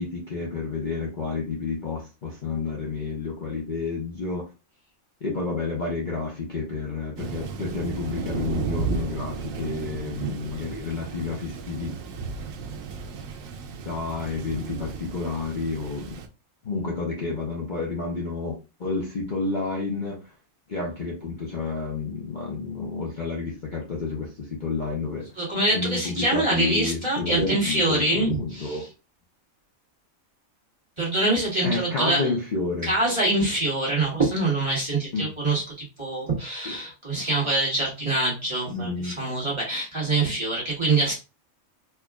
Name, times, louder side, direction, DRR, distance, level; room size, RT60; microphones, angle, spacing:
voice 1, 0.0-4.5 5.2-12.0 13.8-16.2 16.6-20.3 20.7-25.3 25.7-28.8 31.6-33.0 35.1-35.3 36.6-36.8 38.7-39.2, left 4 dB, 40° left, -3 dB, 0.9 m, -30 dB
Thunder, 7.2-16.3, right 5 dB, 85° right, 1.0 m, -34 dB
voice 2, 25.4-28.9 31.0-32.2 32.8-35.6 36.0-41.1, right 2 dB, 20° right, -6 dB, 1.7 m, -25 dB
4.5 x 2.8 x 2.3 m, 0.30 s
omnidirectional pair, 1.4 m